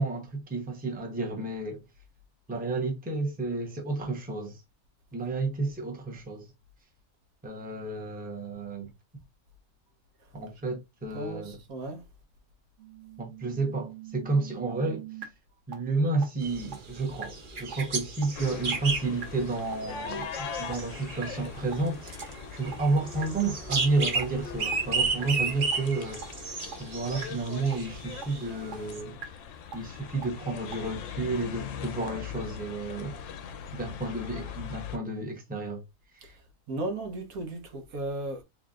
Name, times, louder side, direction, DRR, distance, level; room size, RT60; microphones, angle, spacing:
voice 1, 0.0-1.8 2.5-4.6 5.1-6.5 7.4-8.9 10.3-11.6 13.2-15.0 15.7-22.1 22.5-26.5 26.8-29.2 29.7-33.2 33.7-35.8 36.1-36.4, right 3 dB, 10° right, 0.8 m, -31 dB
voice 2, 11.1-12.0 36.2-36.3 36.7-38.4, right 2 dB, 75° right, 1.4 m, -35 dB
sound 1, 12.8-15.2 15.7-15.8 16.2-16.3 16.7-16.8 17.2-17.3 17.7-17.8 18.2-18.3 18.7-18.8 19.2-19.3 19.7-19.8 20.2-20.3 20.7-20.8 21.2-21.3 21.7-21.8 22.2-22.3 22.7-22.8 23.2-23.3 23.7-23.8 24.2-24.3 24.7-24.8 25.2-25.3 25.7-25.8 26.2-26.3 26.7-26.8 27.2-27.3 27.7-27.8 28.2-28.3 28.7-28.8 29.2-29.3 29.7-29.8 30.2-30.3 30.7-30.8, right 9 dB, 60° right, 1.2 m, -40 dB
sound 2, 16.4-29.0, right 4 dB, 45° right, 0.8 m, -34 dB
sound 3, 18.3-35.0, left 7 dB, 65° left, 0.9 m, -41 dB
4.0 x 3.3 x 2.4 m
omnidirectional pair, 1.5 m